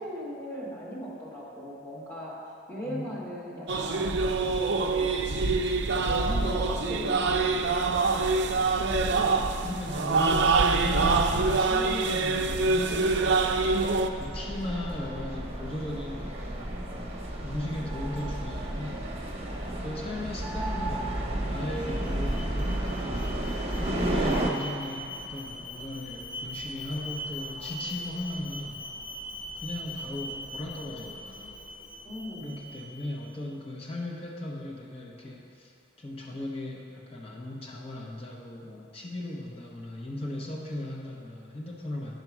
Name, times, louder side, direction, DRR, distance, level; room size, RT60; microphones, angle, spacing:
voice 1, 0.0-2.4 2.7-4.5 4.8-5.3 6.1-7.6 9.1-9.8 32.0-32.6, equal, 10° left, -7 dB, 1.7 m, -38 dB
sound 1, 3.7-14.1, right 3 dB, 60° right, 0.5 m, -25 dB
sound 2, 5.9-24.5, right 1 dB, 30° right, 0.9 m, -34 dB
voice 2, 8.6-19.1 19.8-23.4 23.7-28.8 29.6-31.6 32.4-35.7 36.0-42.1, left 1 dB, 30° left, -2 dB, 0.9 m, -37 dB
Alarm, 21.3-33.3, left 1 dB, 80° left, 0.9 m, -41 dB
10.5 x 4.4 x 6.1 m, 2.7 s
head